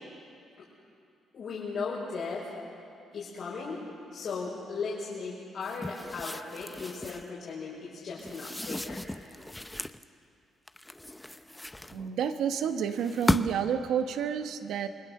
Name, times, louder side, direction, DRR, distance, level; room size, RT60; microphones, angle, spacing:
voice 1, 1.3-2.5 3.1-3.8 4.1-9.0, left 4 dB, 60° left, -6 dB, 5.8 m, -37 dB
sound 1, 5.6-7.3 8.2-10.0 10.7-12.3 12.9-13.8, left 1 dB, 10° left, 0.7 m, -34 dB
voice 2, 11.9-14.9, right 8 dB, 80° right, 7 dB, 1.3 m, -30 dB
28.5 x 21.0 x 6.8 m, 2.5 s
cardioid pair, 90°, 0 cm